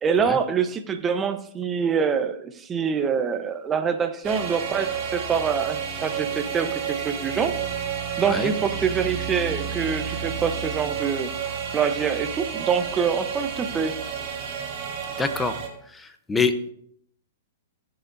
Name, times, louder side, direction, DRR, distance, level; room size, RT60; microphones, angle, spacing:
voice 1, 0.0-7.5 8.2-11.3 11.7-14.0, right 6 dB, 20° right, 8 dB, 0.9 m, -25 dB
sound 1, 4.2-15.7, right 7 dB, 40° right, 2.4 m, -30 dB
voice 2, 15.2-15.6 15.9-16.7, left 4 dB, 10° left, 9 dB, 0.9 m, -25 dB
17.5 x 7.1 x 2.7 m, 0.67 s
hypercardioid pair, 130°, 0 cm